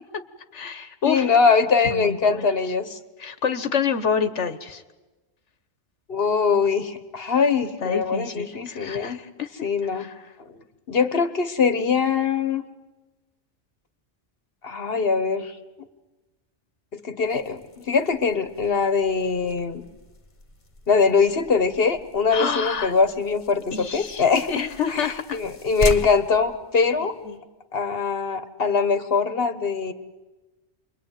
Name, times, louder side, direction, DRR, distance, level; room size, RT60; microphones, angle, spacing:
voice 1, 0.5-1.3 1.8-2.5 3.2-4.8 7.8-10.1 22.3-22.9 23.7-25.4 27.2-27.4, left 6 dB, 85° left, 10 dB, 1.6 m, -28 dB
voice 2, 1.0-3.0 6.1-9.2 9.6-10.1 10.9-12.6 14.6-15.5 16.9-19.8 20.9-24.6 24.9-27.1 27.7-29.9, left 5 dB, 55° left, 11 dB, 1.5 m, -22 dB
sound 1, 17.2-27.4, left 1 dB, 40° left, 1.7 m, -38 dB
28.5 x 23.0 x 9.2 m, 1.2 s
omnidirectional pair, 1.2 m